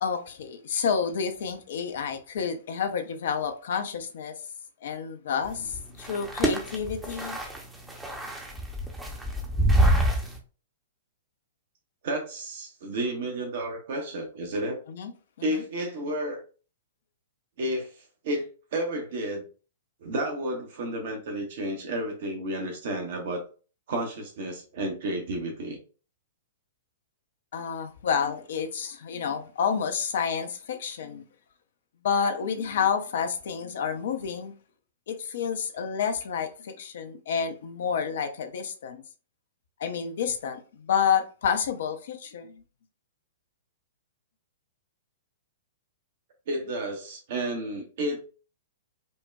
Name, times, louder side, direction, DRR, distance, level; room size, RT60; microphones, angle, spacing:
voice 1, 0.0-4.4 4.8-7.4 14.9-15.1 15.4-15.6 27.5-31.2 32.0-34.5 35.1-39.0 39.8-42.6, left 7 dB, 55° left, 0.6 m, -29 dB
sound 1, 5.4-10.4, right 1 dB, 5° right, 0.7 m, -26 dB
voice 2, 12.0-14.8 15.4-16.4 17.6-18.5 18.7-19.5 20.0-23.4 23.9-25.8 46.5-48.2, right 1 dB, 50° right, 0.8 m, -31 dB
5.3 x 2.2 x 2.2 m
figure-of-eight pair, 110°, 0 cm